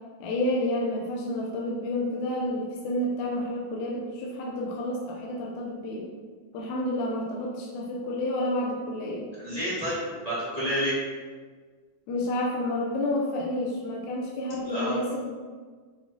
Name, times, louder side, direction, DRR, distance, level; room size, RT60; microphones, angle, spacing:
voice 1, 0.2-6.1 6.5-9.3 12.1-15.2, left 1 dB, 75° left, -2 dB, 2.0 m, -30 dB
voice 2, 9.3-10.9 14.5-14.9, equal, 20° right, -10 dB, 1.1 m, -30 dB
8.0 x 4.6 x 2.8 m, 1.5 s
omnidirectional pair, 3.7 m